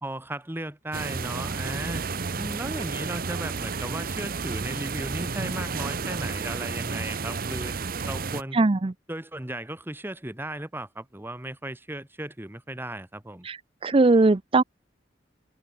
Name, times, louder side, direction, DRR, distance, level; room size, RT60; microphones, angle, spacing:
voice 1, 0.0-2.0 2.4-7.8 8.1-8.6 9.1-13.5, right 1 dB, 10° right, 1.3 m, -36 dB
sound 1, 0.9-8.4, right 4 dB, 50° right, 0.9 m, -31 dB
voice 2, 8.5-8.9 13.4-14.6, right 3 dB, 30° right, 0.5 m, -20 dB
head